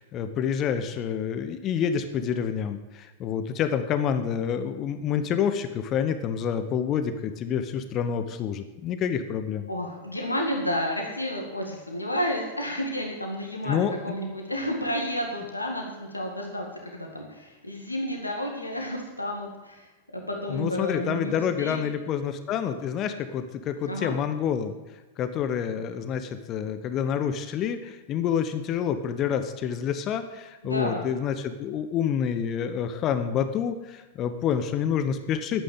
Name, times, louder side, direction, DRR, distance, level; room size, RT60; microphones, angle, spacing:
voice 1, 0.0-9.7 13.6-13.9 20.5-24.7 25.2-35.6, left 8 dB, 35° left, 10 dB, 1.0 m, -28 dB
voice 2, 9.7-21.8 23.8-24.2 30.6-31.0, equal, 85° left, 1 dB, 1.9 m, -31 dB
10.5 x 9.1 x 8.5 m, 1.1 s
figure-of-eight pair, 90°, 0 cm